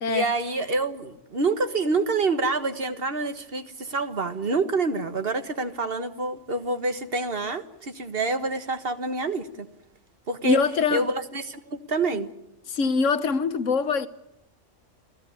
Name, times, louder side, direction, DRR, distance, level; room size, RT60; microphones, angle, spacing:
voice 1, 0.1-9.7 10.3-10.6 10.9-12.3, right 3 dB, 50° right, 1.6 m, -27 dB
voice 2, 10.4-11.1 12.7-14.1, left 5 dB, 90° left, 1.5 m, -23 dB
27.5 x 15.5 x 9.7 m
omnidirectional pair, 1.2 m